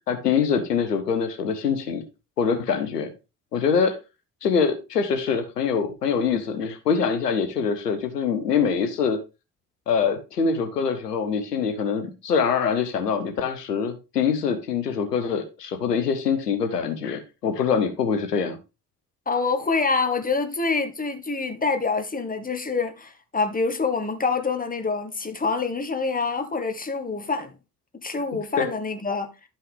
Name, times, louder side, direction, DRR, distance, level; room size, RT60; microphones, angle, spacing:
voice 1, 0.1-2.0 2.4-3.1 3.5-4.0 4.4-9.2 9.9-18.6 28.6-28.7, left 6 dB, 85° left, 0.8 m, -24 dB
voice 2, 19.3-27.5 27.9-29.3, left 4 dB, 20° left, 1.4 m, -26 dB
11.0 x 5.5 x 3.5 m
figure-of-eight pair, 40°, 47 cm